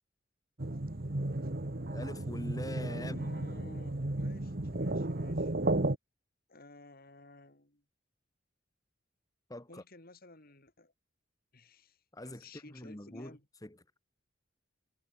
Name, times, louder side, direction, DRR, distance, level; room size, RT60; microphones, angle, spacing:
sound 1, 0.6-5.9, right 2 dB, 50° right, 1.4 m, -34 dB
voice 1, 1.9-3.3 9.5-9.8 12.1-13.8, left 1 dB, 20° left, 2.3 m, -44 dB
voice 2, 3.0-5.5 6.5-7.8 9.7-10.9 11.5-13.4, left 2 dB, 50° left, 3.4 m, -55 dB
head